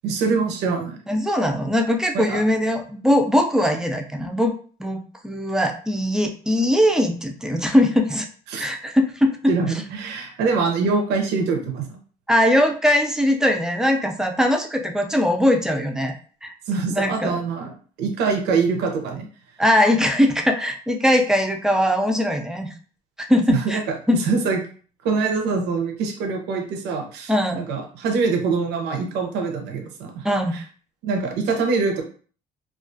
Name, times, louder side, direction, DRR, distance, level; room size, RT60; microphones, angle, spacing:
voice 1, 0.0-1.0 2.1-2.4 8.5-8.7 9.5-11.8 16.7-19.3 23.5-24.6 25.0-30.3 30.5-30.6 31.0-32.0, right 4 dB, 85° right, 3 dB, 0.6 m, -24 dB
voice 2, 1.1-4.5 4.8-8.3 8.6-9.5 12.3-16.2 16.4-16.5 17.0-17.3 19.6-22.7 23.2-23.8 24.1-24.2 27.3-27.6 30.2-30.5, left 1 dB, 5° right, 4 dB, 0.3 m, -20 dB
2.3 x 2.2 x 2.5 m, 0.41 s
cardioid pair, 110°, 17 cm